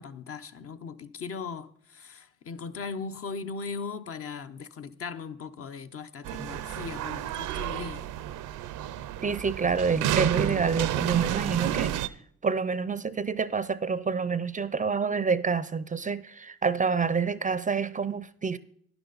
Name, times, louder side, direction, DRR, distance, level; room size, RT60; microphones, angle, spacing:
voice 1, 0.0-8.0, left 5 dB, 50° left, 0.8 m, -38 dB
sound 1, 6.2-12.1, right 11 dB, 85° right, 0.6 m, -31 dB
voice 2, 9.2-11.9 12.4-18.6, right 5 dB, 25° right, 0.5 m, -27 dB
12.0 x 10.5 x 4.0 m
cardioid pair, 90°, 30 cm